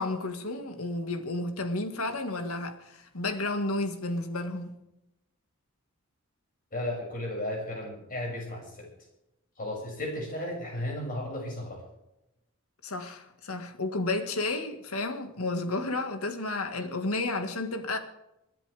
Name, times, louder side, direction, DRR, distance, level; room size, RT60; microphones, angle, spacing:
voice 1, 0.0-4.7 12.8-18.0, left 2 dB, 75° left, 1.9 m, -32 dB
voice 2, 6.7-8.9 9.6-11.8, left 1 dB, 40° left, 7.0 m, -34 dB
28.0 x 10.5 x 3.6 m
head